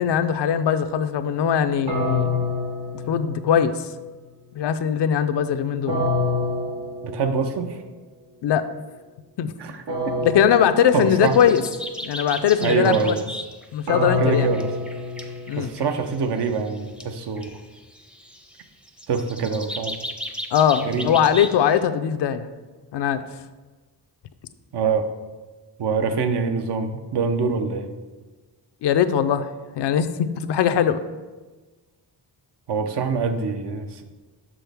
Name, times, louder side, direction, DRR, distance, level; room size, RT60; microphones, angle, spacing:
voice 1, 0.0-2.4 3.1-3.9 4.5-6.0 8.4-8.6 9.4-9.5 10.2-11.6 12.0-13.1 13.7-14.5 15.5-15.7 20.5-22.5 22.9-23.3 28.8-29.5 29.7-31.0, left 8 dB, 75° left, 11 dB, 0.5 m, -20 dB
sound 1, 1.9-3.9 5.9-7.7 9.9-11.7 13.9-16.1, left 2 dB, 90° right, 1.3 m, -27 dB
voice 2, 7.0-7.8 9.6-10.2 10.9-11.5 12.6-13.3 14.2-14.7 15.6-17.6 19.1-20.0 20.8-21.1 24.7-25.1 25.8-27.9 32.7-34.0, right 5 dB, 70° right, 7 dB, 0.7 m, -25 dB
sound 2, 11.0-13.7 14.1-21.8, equal, 5° right, 0.5 m, -37 dB
6.2 x 6.1 x 3.4 m, 1.3 s
cardioid pair, 95°, 41 cm